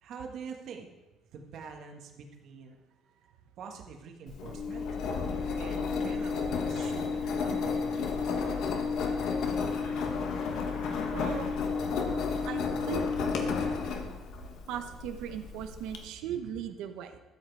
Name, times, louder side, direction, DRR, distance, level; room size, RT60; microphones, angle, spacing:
voice 1, 0.0-0.9 1.3-2.8 3.1-4.9 5.6-8.0, right 6 dB, 55° right, 3 dB, 1.6 m, -45 dB
Engine, 4.3-16.0, left 5 dB, 65° left, 1.4 m, -32 dB
voice 2, 11.1-11.5 12.5-13.3 13.7-13.8 14.7-17.2, right 9 dB, 85° right, 8 dB, 1.0 m, -38 dB
12.5 x 7.6 x 4.8 m, 1.1 s
cardioid pair, 160°, 0 cm